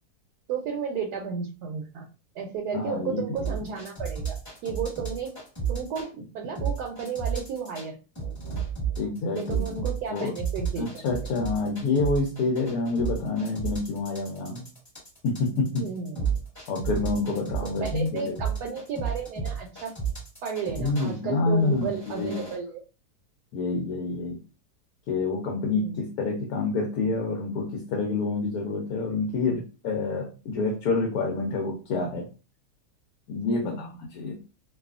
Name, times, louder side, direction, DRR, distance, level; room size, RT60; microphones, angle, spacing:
voice 1, 0.5-2.0 2.3-5.3 5.7-8.0 9.3-11.0 15.8-16.2 17.6-19.9 20.4-22.8 25.7-26.0 33.5-33.9, right 6 dB, 80° right, 1 dB, 1.1 m, -33 dB
voice 2, 2.7-3.5 9.0-9.6 10.1-10.3 10.8-14.7 15.2-15.8 16.7-18.3 20.7-22.4 23.5-24.4 25.1-32.3 33.3-34.4, left 3 dB, 75° left, 0 dB, 1.1 m, -28 dB
sound 1, 3.4-6.1 6.6-7.9 8.2-21.1 21.7-22.6, right 6 dB, 15° left, 0.9 m, -32 dB
2.6 x 2.3 x 2.3 m, 0.32 s
omnidirectional pair, 1.7 m